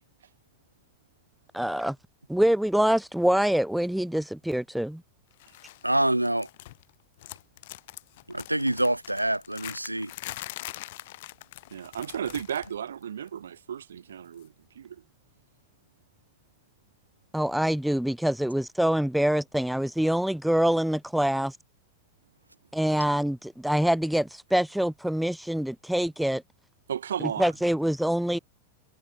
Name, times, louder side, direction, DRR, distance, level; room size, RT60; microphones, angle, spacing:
voice 1, 1.5-2.0 2.3-5.0 17.3-21.5 22.7-26.4 27.4-28.4, equal, ahead, 0.4 m, -25 dB
sound 1, 5.4-5.8 6.1-6.9 7.2-12.8 13.0-13.3 14.4-14.5, left 18 dB, 50° left, 1.3 m, -43 dB
voice 2, 5.8-6.5 8.3-10.1, right 1 dB, 85° right, 1.4 m, -26 dB
voice 3, 11.7-15.0 26.9-27.5, right 8 dB, 65° right, 1.5 m, -34 dB
figure-of-eight pair, 90°, 0 cm